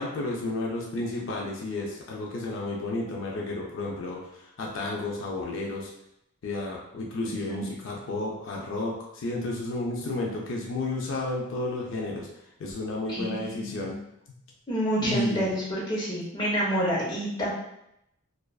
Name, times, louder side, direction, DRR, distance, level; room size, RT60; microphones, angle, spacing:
voice 1, 0.0-5.9 6.4-12.3 12.6-13.9 15.0-15.6, left 2 dB, 65° left, -2 dB, 0.4 m, -32 dB
voice 2, 7.2-7.7 13.1-13.9 14.7-17.5, equal, 20° left, -6 dB, 0.6 m, -29 dB
2.3 x 2.3 x 2.3 m, 0.80 s
head